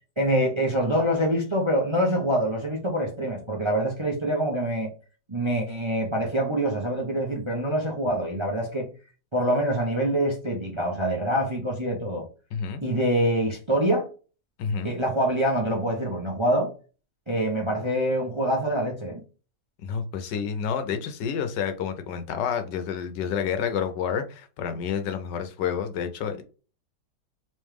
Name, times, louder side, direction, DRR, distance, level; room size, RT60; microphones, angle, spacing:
voice 1, 0.2-4.9 5.3-8.9 9.3-12.3 12.8-14.1 14.8-16.7 17.3-19.2, right 1 dB, 25° right, -1 dB, 0.8 m, -25 dB
voice 2, 12.5-12.8 14.6-14.9 19.8-26.4, left 7 dB, 80° left, 8 dB, 1.4 m, -29 dB
3.5 x 3.2 x 3.4 m, 0.34 s
omnidirectional pair, 1.9 m